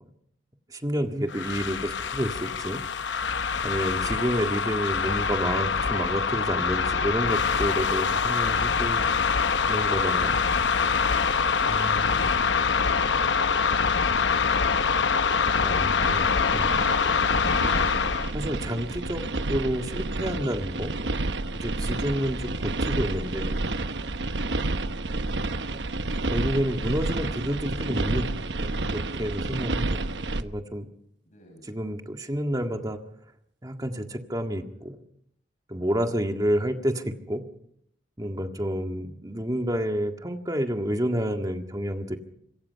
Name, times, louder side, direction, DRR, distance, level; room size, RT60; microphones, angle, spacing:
voice 1, 0.7-2.8 3.6-9.1 9.7-10.4 11.7-12.2 15.6-16.7 18.3-19.2 19.5-20.9 21.5-23.6 25.7-25.8 26.3-28.3 28.6-30.0 30.4-30.9 31.6-33.0 33.6-35.0 35.7-37.4 38.2-42.2, equal, 20° right, 5 dB, 1.8 m, -29 dB
sound 1, 1.3-18.3, left 5 dB, 90° left, 0.8 m, -24 dB
voice 2, 11.4-14.8 31.2-31.8 38.5-38.8, equal, 45° left, 1 dB, 6.2 m, -50 dB
sound 2, 16.0-30.4, right 2 dB, 80° right, 1.1 m, -30 dB
26.0 x 23.5 x 5.7 m, 0.72 s
head